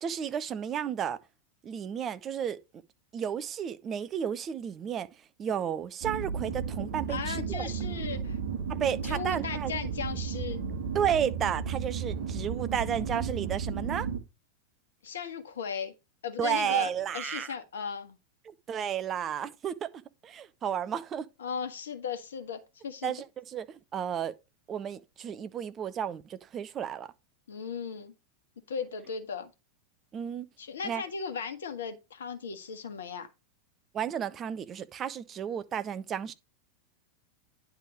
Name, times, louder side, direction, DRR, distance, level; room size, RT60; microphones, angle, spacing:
voice 1, 0.0-1.2 1.6-2.6 3.1-5.1 5.4-7.7 8.7-9.8 10.9-14.1 16.4-17.5 18.5-19.9 20.2-21.3 23.0-24.3 24.7-27.1 30.1-30.5 30.8-31.0 33.9-36.3, right 8 dB, 25° right, 0.7 m, -32 dB
sound 1, 6.0-14.2, right 6 dB, 55° right, 1.6 m, -34 dB
voice 2, 7.1-8.4 9.0-10.6 15.0-15.9 16.2-18.2 21.4-23.1 27.5-28.1 28.7-29.5 30.6-33.3, left 6 dB, 65° left, 1.3 m, -37 dB
10.0 x 3.6 x 4.9 m
figure-of-eight pair, 90°, 0 cm